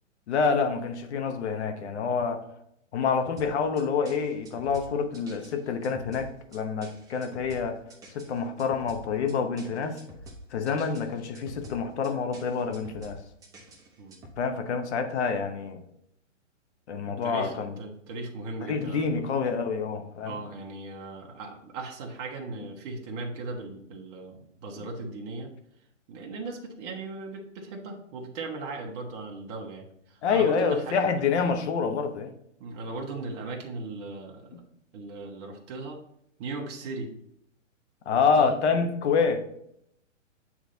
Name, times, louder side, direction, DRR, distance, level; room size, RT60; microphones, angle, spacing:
voice 1, 0.3-2.4 2.9-7.8 8.1-10.0 10.5-13.2 14.4-15.8 16.9-17.7 18.6-20.4 30.2-32.3 38.1-39.4, left 5 dB, 60° left, 7 dB, 1.0 m, -27 dB
sound 1, 3.4-14.4, right 1 dB, 10° right, 0.7 m, -47 dB
voice 2, 17.0-19.4 20.2-25.5 26.1-31.0 32.6-34.6 34.9-36.0 36.4-37.1 38.1-38.6, right 3 dB, 30° right, 1 dB, 1.0 m, -38 dB
8.4 x 3.2 x 3.8 m, 0.74 s
hypercardioid pair, 140°, 38 cm